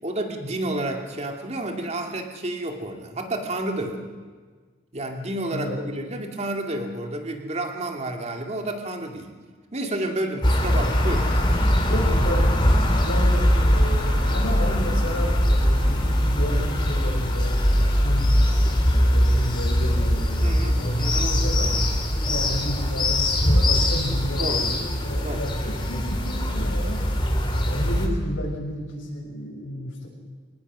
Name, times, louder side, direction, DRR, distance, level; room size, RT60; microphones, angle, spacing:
voice 1, 0.0-4.0 4.9-9.3 9.7-11.3 17.8-17.9 20.4-21.3 24.4-24.7 25.2-25.5, right 1 dB, 35° right, 3 dB, 2.3 m, -30 dB
sound 1, 10.4-28.1, equal, 25° left, 2.8 m, -21 dB
voice 2, 10.7-11.0 11.8-12.5 12.9-18.4 18.9-21.8 22.3-27.0 27.6-30.1, equal, 90° left, -1 dB, 6.3 m, -32 dB
Organ, 11.8-17.6, left 1 dB, 5° right, 6.1 m, -40 dB
24.5 x 19.0 x 6.2 m, 1.5 s
head